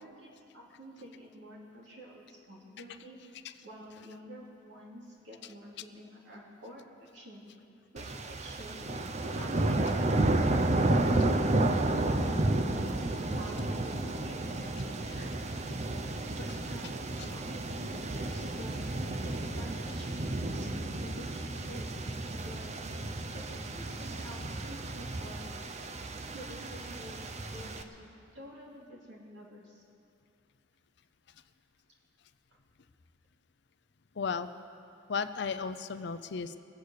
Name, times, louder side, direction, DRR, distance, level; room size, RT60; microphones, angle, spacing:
voice 1, 0.0-3.2 3.6-7.4 7.9-8.8 9.3-10.7 11.2-15.5 16.4-18.8 19.2-21.9 22.4-23.0 23.3-25.5 26.3-28.1 28.3-29.8, equal, 65° right, -3 dB, 3.1 m, -49 dB
sound 1, 8.0-27.8, right 2 dB, 35° right, 0.7 m, -32 dB
voice 2, 34.2-34.5 35.1-36.6, left 5 dB, 60° left, 11 dB, 0.5 m, -34 dB
21.5 x 8.3 x 6.5 m, 2.5 s
head